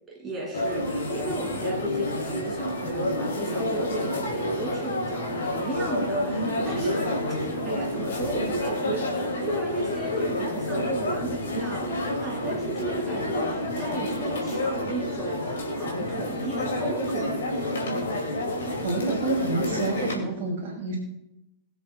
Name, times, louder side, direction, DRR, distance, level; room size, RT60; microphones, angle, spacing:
voice 1, 0.1-17.3, right 2 dB, 15° right, -2 dB, 2.5 m, -35 dB
sound 1, 0.5-20.2, left 1 dB, 65° left, 2.2 m, -29 dB
voice 2, 18.8-21.0, right 3 dB, 45° right, -2 dB, 2.4 m, -29 dB
21.5 x 7.3 x 2.2 m, 0.86 s
figure-of-eight pair, 90°, 0 cm